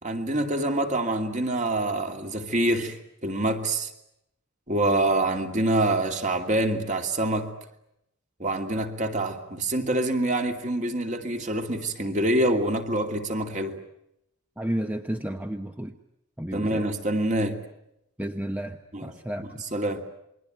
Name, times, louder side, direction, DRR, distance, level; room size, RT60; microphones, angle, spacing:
voice 1, 0.0-3.9 4.7-7.5 8.4-13.8 16.5-17.6 18.9-19.1 19.7-20.0, right 1 dB, 35° right, 5 dB, 2.6 m, -26 dB
voice 2, 14.6-15.9 16.4-16.9 18.2-19.6, right 1 dB, 10° right, 6 dB, 1.0 m, -32 dB
28.5 x 22.0 x 9.2 m, 0.82 s
head